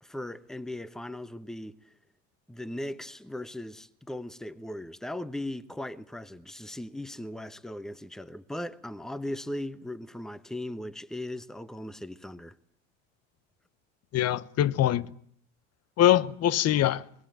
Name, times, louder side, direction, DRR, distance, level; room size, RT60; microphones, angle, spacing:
voice 1, 0.0-1.7 2.5-12.6, left 1 dB, ahead, 1.1 m, -38 dB
voice 2, 14.1-15.1 16.0-17.0, left 12 dB, 45° left, 1.1 m, -23 dB
25.0 x 21.0 x 9.2 m
supercardioid pair, 85°, 34 cm